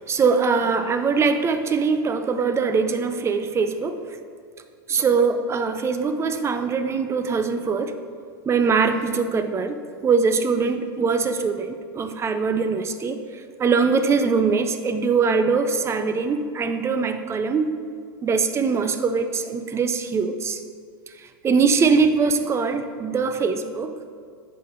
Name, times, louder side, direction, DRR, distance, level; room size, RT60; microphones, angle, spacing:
voice 1, 0.0-4.0 4.9-7.9 8.5-13.2 13.6-17.8 18.2-20.6 21.4-24.0, right 5 dB, 25° right, 9 dB, 0.6 m, -22 dB
8.3 x 5.7 x 4.0 m, 2.1 s
hypercardioid pair, 95°, 12 cm